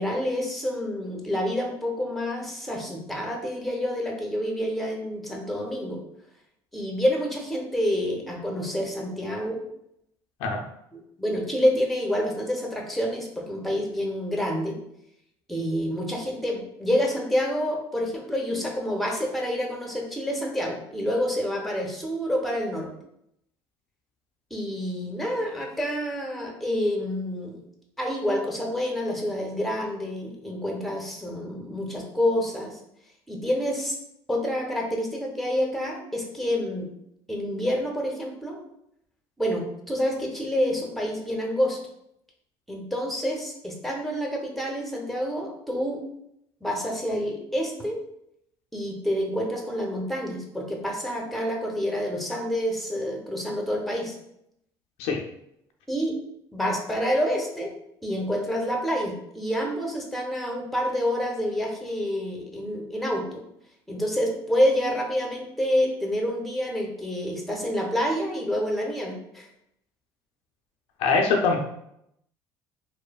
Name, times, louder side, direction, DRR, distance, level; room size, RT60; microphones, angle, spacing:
voice 1, 0.0-6.0 6.7-9.6 10.9-14.8 15.5-22.9 24.5-27.6 28.0-32.8 33.3-34.0 34.3-36.9 37.3-38.6 39.4-41.8 42.7-46.0 46.6-48.0 48.7-54.2 55.9-56.2 56.5-57.7 58.0-63.4 63.9-69.5, equal, ahead, -1 dB, 0.7 m, -28 dB
voice 2, 71.0-71.6, left 4 dB, 75° left, 2 dB, 0.5 m, -22 dB
3.0 x 2.0 x 2.3 m, 0.76 s
supercardioid pair, 75°, 11 cm